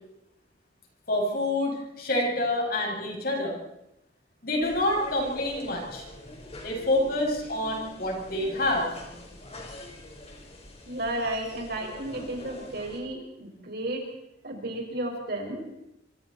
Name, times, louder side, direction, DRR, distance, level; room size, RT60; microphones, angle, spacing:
voice 1, 1.1-3.6 4.4-6.1 6.6-8.9 9.2-9.3, left 1 dB, 55° left, 0 dB, 6.8 m, -27 dB
sound 1, 4.6-13.0, left 1 dB, 35° left, 4.9 m, -44 dB
voice 2, 10.9-14.0 14.4-15.6, right 1 dB, 60° right, 1 dB, 5.8 m, -33 dB
25.5 x 25.0 x 4.4 m, 0.86 s
head